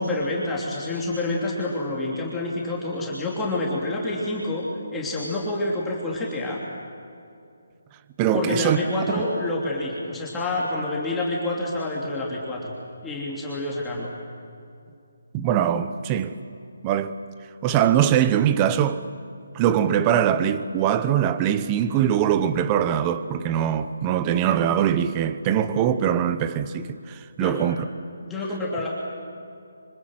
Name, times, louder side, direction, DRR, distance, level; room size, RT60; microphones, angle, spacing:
voice 1, 0.0-6.6 8.3-12.7 13.0-14.1 27.4-27.6 28.2-28.9, left 2 dB, 5° left, 3.2 m, -28 dB
voice 2, 8.2-8.8 15.3-16.3 16.8-17.1 17.6-19.0 19.5-27.9, right 9 dB, 20° right, 0.9 m, -22 dB
26.0 x 25.0 x 7.8 m
hypercardioid pair, 165°, 0 cm